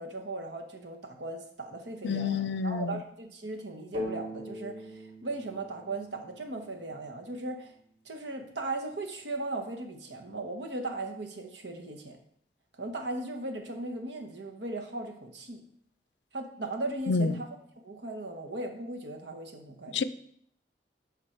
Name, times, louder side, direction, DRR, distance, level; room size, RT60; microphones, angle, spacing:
voice 1, 0.0-7.7 8.0-12.2 12.8-15.6 16.3-17.6 17.8-20.0, right 2 dB, 80° right, 4 dB, 1.2 m, -37 dB
voice 2, 2.0-2.9 17.1-17.3 19.9-20.0, left 4 dB, 80° left, 14 dB, 0.4 m, -28 dB
sound 1, 3.9-7.6, left 1 dB, 40° right, 1.5 m, -41 dB
11.5 x 4.0 x 4.4 m, 0.66 s
head